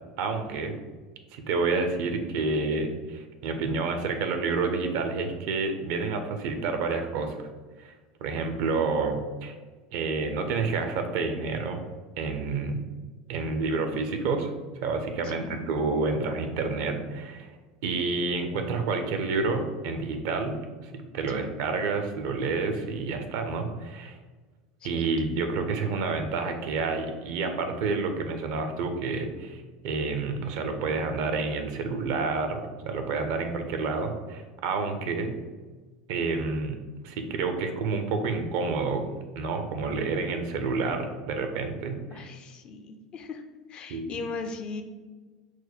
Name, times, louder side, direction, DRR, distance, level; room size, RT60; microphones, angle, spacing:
voice 1, 0.2-0.7 1.3-7.4 7.8-7.9 8.2-9.5 9.9-11.8 12.2-12.8 13.3-14.5 14.8-17.5 17.8-20.6 20.8-24.2 24.8-35.4 36.1-42.3 43.9-44.2, right 4 dB, 55° right, 6 dB, 0.5 m, -29 dB
voice 2, 15.2-15.7 21.3-21.6 24.8-25.1 35.2-35.3 42.1-43.4 43.7-44.8, left 4 dB, 35° left, 7 dB, 0.4 m, -39 dB
4.4 x 2.1 x 4.0 m, 1.3 s
figure-of-eight pair, 75°, 3 cm